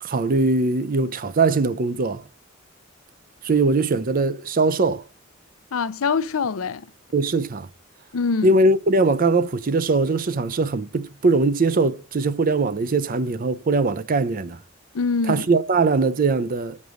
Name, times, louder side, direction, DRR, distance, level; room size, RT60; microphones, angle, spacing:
voice 1, 0.0-2.2 3.4-5.0 7.1-7.7 8.4-14.6 15.3-16.8, right 3 dB, 45° right, 0.5 m, -21 dB
voice 2, 5.7-6.9 8.1-8.5 14.9-15.5, left 5 dB, 85° left, 0.6 m, -24 dB
8.0 x 5.4 x 6.3 m
head